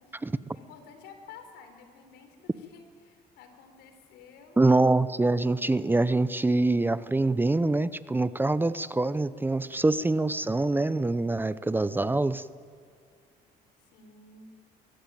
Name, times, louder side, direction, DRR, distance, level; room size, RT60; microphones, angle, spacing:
voice 1, 0.0-4.7 13.9-14.5, left 5 dB, 90° left, 7 dB, 4.0 m, -51 dB
voice 2, 4.6-12.4, right 2 dB, 10° right, 15 dB, 0.6 m, -25 dB
22.5 x 18.0 x 9.1 m, 2.1 s
cardioid pair, 110°, 17 cm